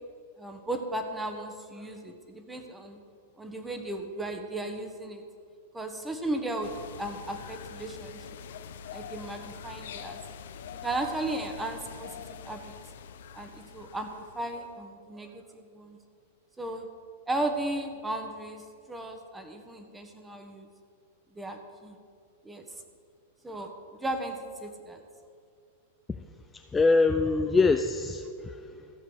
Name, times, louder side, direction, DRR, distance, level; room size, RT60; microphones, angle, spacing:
voice 1, 0.4-3.0 3.4-5.2 5.7-6.7 7.0-8.3 8.9-10.2 10.7-12.7 13.3-16.0 16.6-16.9 17.3-18.6 18.9-20.7 21.3-22.0 22.4-22.6 23.4-23.7 24.0-25.0, right 1 dB, 10° right, 5 dB, 1.4 m, -35 dB
sound 1, 6.6-14.7, left 7 dB, 70° left, 0.7 m, -44 dB
voice 2, 26.5-28.9, left 3 dB, 15° left, 7 dB, 0.4 m, -25 dB
14.5 x 7.4 x 6.4 m, 2.2 s
hypercardioid pair, 130°, 0 cm